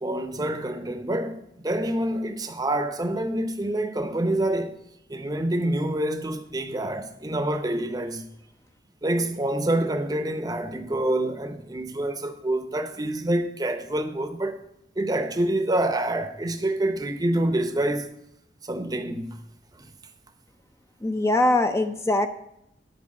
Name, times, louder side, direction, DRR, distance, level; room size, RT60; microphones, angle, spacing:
voice 1, 0.0-4.8 5.1-8.2 9.0-14.6 15.0-18.1 18.7-19.4, right 1 dB, 20° right, 0.8 m, -27 dB
voice 2, 21.0-22.3, left 2 dB, 15° left, 0.5 m, -22 dB
11.0 x 4.6 x 7.3 m
head